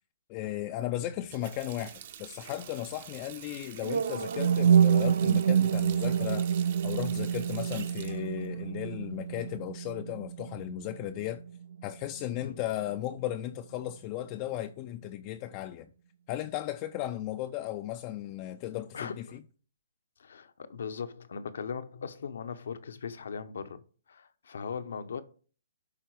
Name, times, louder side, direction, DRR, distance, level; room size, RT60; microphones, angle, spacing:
voice 1, 0.3-6.5 6.8-11.4 11.8-15.9 16.3-19.4, left 13 dB, 30° left, 0.4 m, -36 dB
Water tap faucet, 1.1-9.6, right 10 dB, 50° right, 0.9 m, -47 dB
sound 1, 3.8-11.8, right 8 dB, 75° right, 0.5 m, -27 dB
voice 2, 18.9-19.4 20.2-23.8 24.1-25.2, left 6 dB, 75° left, 0.9 m, -39 dB
11.0 x 4.0 x 4.7 m
hypercardioid pair, 150°, 0 cm